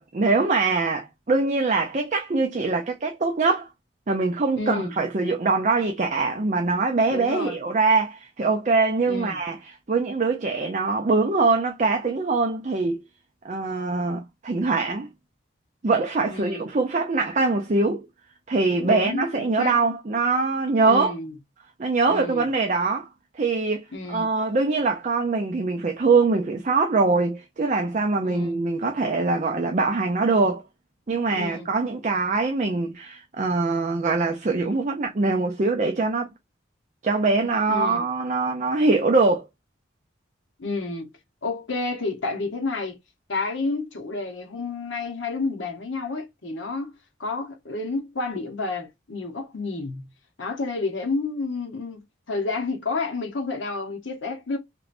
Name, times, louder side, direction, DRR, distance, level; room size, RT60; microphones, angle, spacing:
voice 1, 0.0-3.7 4.1-13.0 13.4-15.1 15.8-18.1 18.5-21.1 21.8-23.1 23.3-30.6 31.1-36.3 37.0-39.4, right 3 dB, 35° right, 0.4 m, -23 dB
voice 2, 4.5-4.9 7.1-7.6 9.1-9.4 16.3-16.7 18.8-19.8 20.8-21.3 22.1-22.5 23.9-24.3 28.2-28.6 31.3-31.7 37.7-38.0 40.6-41.1 41.4-43.0 43.3-46.9 47.2-50.1 50.4-52.0 52.3-54.6, left 3 dB, 75° left, 1.0 m, -30 dB
3.0 x 3.0 x 2.5 m
head